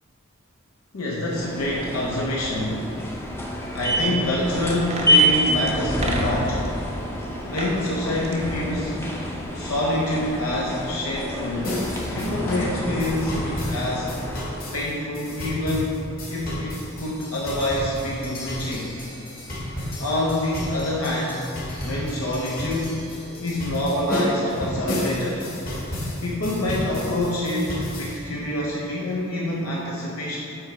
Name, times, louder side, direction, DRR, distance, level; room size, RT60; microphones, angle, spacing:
voice 1, 0.9-2.8 3.7-6.6 7.5-9.0 9.5-11.8 12.1-14.1 14.7-16.0 16.3-18.9 20.0-21.4 21.8-23.0 23.4-25.5 26.2-30.4, left 1 dB, 90° left, -4 dB, 0.8 m, -26 dB
sound 1, 1.3-14.8, equal, 10° left, 0.5 m, -27 dB
sound 2, 4.7-6.7 7.4-7.8 8.1-9.5 9.7-9.8, right 2 dB, 30° right, 0.5 m, -34 dB
sound 3, 11.6-28.2, left 1 dB, 45° left, 1.4 m, -32 dB
7.8 x 3.1 x 4.9 m, 2.7 s
head